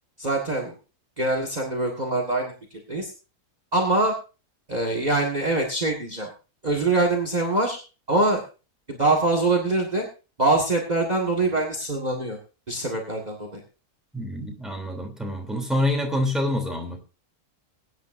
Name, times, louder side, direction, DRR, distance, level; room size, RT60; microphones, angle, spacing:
voice 1, 0.2-0.7 1.2-2.5 2.9-3.1 3.7-4.1 4.7-6.3 6.6-7.8 8.1-8.4 8.9-10.1 10.4-12.4 12.7-13.6, right 2 dB, 30° right, 2 dB, 2.1 m, -23 dB
voice 2, 14.1-17.0, left 1 dB, ahead, 1 dB, 3.1 m, -26 dB
22.5 x 9.5 x 2.7 m, 0.33 s
omnidirectional pair, 1.6 m